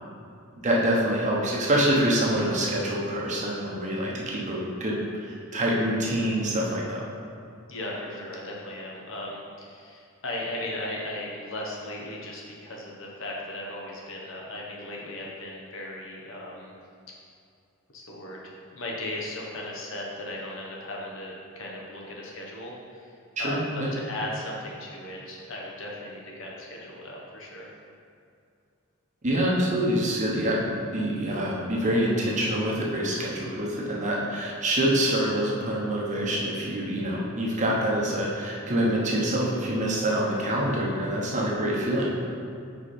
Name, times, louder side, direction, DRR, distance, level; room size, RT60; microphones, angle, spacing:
voice 1, 0.6-7.0 23.4-23.9 29.2-42.1, right 1 dB, 35° right, -3 dB, 1.0 m, -26 dB
voice 2, 7.7-16.7 17.9-18.4 18.7-23.1 23.4-27.7, left 1 dB, 65° left, -2 dB, 1.1 m, -37 dB
4.9 x 4.8 x 4.3 m, 2.5 s
head